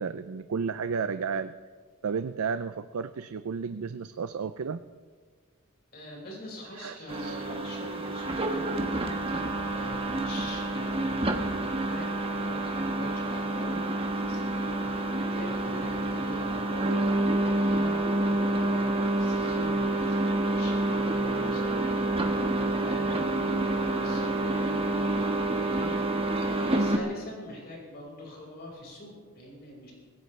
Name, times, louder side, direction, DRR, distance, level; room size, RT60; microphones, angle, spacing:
voice 1, 0.0-1.5 2.0-4.8 6.7-7.4, right 5 dB, 70° right, 11 dB, 0.5 m, -32 dB
voice 2, 5.9-29.9, equal, 45° left, -2 dB, 5.3 m, -43 dB
sound 1, 7.1-27.0, right 2 dB, 25° right, 1.4 m, -28 dB
25.5 x 15.5 x 3.3 m, 1.5 s
head